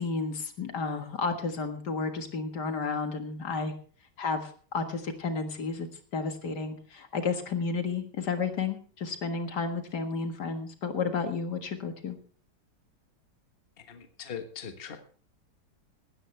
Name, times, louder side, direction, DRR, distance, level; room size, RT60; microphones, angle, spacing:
voice 1, 0.0-3.7 4.2-5.9 6.1-12.2, left 4 dB, 65° left, 7 dB, 2.3 m, -32 dB
voice 2, 13.8-15.0, left 7 dB, 35° left, 7 dB, 1.5 m, -41 dB
17.5 x 13.0 x 3.4 m, 0.42 s
omnidirectional pair, 1.9 m